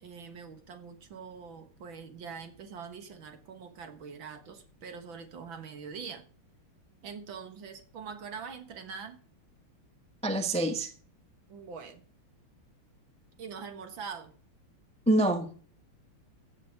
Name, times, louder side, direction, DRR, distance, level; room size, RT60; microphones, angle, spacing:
voice 1, 0.0-6.3 7.0-9.2 11.5-12.0 13.4-14.3, right 6 dB, 65° right, 2.2 m, -43 dB
voice 2, 10.2-10.9 15.1-15.6, right 1 dB, 5° left, 0.8 m, -26 dB
15.5 x 6.1 x 6.6 m
omnidirectional pair, 2.4 m